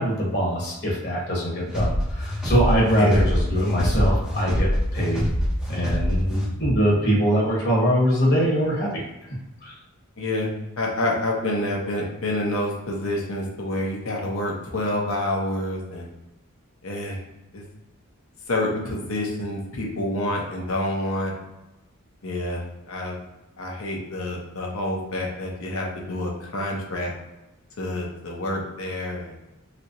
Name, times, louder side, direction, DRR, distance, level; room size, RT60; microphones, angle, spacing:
voice 1, 0.0-5.3 5.7-9.0 9.6-9.7, equal, 50° left, -4 dB, 1.2 m, -23 dB
sound 1, 1.7-6.8, equal, 5° right, 0.6 m, -25 dB
voice 2, 10.2-10.5 10.8-16.1 16.8-17.2 17.5-17.6 18.5-21.3 22.2-23.1 23.6-27.1 27.8-29.3, left 1 dB, 75° left, -2 dB, 0.9 m, -28 dB
3.1 x 2.9 x 2.6 m, 0.98 s
head